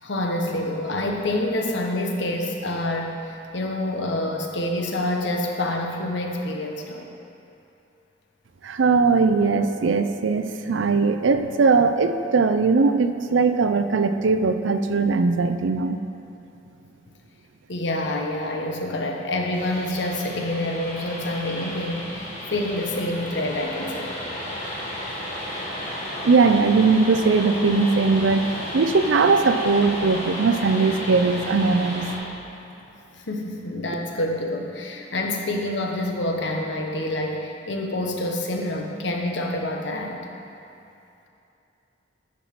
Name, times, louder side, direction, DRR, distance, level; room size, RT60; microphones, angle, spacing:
voice 1, 0.0-7.1 17.7-24.1 33.3-40.2, left 1 dB, 65° left, 2 dB, 1.0 m, -27 dB
voice 2, 8.6-16.0 26.2-28.4 28.7-32.0, right 4 dB, 85° right, 9 dB, 0.5 m, -20 dB
sound 1, 19.5-32.2, equal, 45° left, 1.8 m, -33 dB
10.5 x 5.4 x 6.0 m, 2.8 s
head